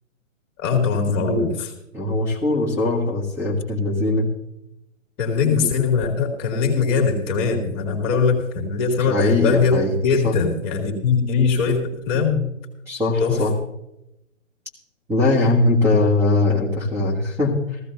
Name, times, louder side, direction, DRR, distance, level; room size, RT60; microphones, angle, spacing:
voice 1, 0.6-1.7 5.2-12.5 13.2-13.4, left 5 dB, 25° left, 2 dB, 2.2 m, -21 dB
voice 2, 1.9-4.3 5.4-5.5 9.0-9.9 10.2-10.3 12.9-13.5 15.1-17.8, left 2 dB, 5° right, -3 dB, 1.6 m, -21 dB
15.5 x 15.0 x 2.7 m, 0.86 s
figure-of-eight pair, 130°, 40 cm